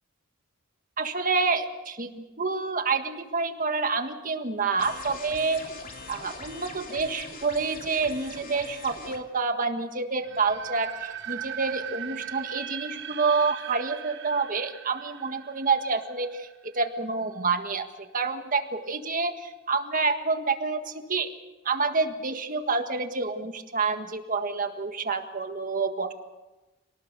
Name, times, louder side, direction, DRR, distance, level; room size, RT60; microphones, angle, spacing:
voice 1, 1.0-5.6 6.1-21.3 21.7-26.1, right 4 dB, 40° right, 7 dB, 1.7 m, -28 dB
sound 1, 4.8-9.2, left 3 dB, 45° left, 3.0 m, -42 dB
sound 2, 10.2-17.1, right 10 dB, 60° right, 1.4 m, -39 dB
26.5 x 19.0 x 6.8 m, 1.1 s
head